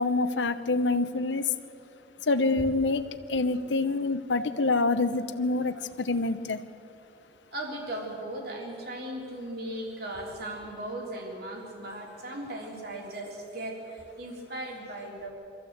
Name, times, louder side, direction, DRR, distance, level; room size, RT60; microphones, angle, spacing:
voice 1, 0.0-1.5 2.2-3.0 3.3-6.6, left 3 dB, 85° left, 11 dB, 0.9 m, -26 dB
voice 2, 7.5-15.3, right 1 dB, 60° right, 0 dB, 3.5 m, -37 dB
24.0 x 14.5 x 8.1 m, 2.6 s
head